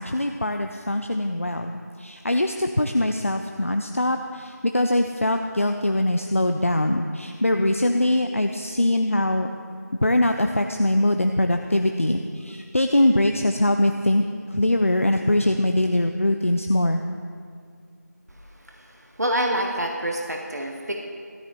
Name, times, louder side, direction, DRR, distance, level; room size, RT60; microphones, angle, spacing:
voice 1, 0.0-1.7 2.0-9.5 10.0-14.3 14.5-17.0, left 1 dB, 50° left, 5 dB, 0.5 m, -22 dB
voice 2, 19.2-20.9, right 1 dB, 65° right, 1 dB, 1.2 m, -26 dB
13.5 x 12.0 x 3.4 m, 2.1 s
figure-of-eight pair, 175°, 9 cm